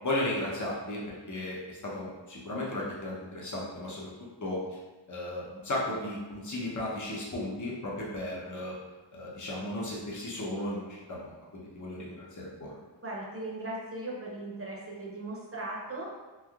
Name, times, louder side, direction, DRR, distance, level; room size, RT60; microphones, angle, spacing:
voice 1, 0.0-1.0 1.3-4.1 4.4-4.6 5.1-8.7 9.1-12.8, left 1 dB, 40° left, -5 dB, 0.8 m, -35 dB
voice 2, 13.0-16.1, right 2 dB, 30° right, -4 dB, 0.8 m, -38 dB
3.3 x 2.6 x 2.3 m, 1.2 s
wide cardioid pair, 45°, 44 cm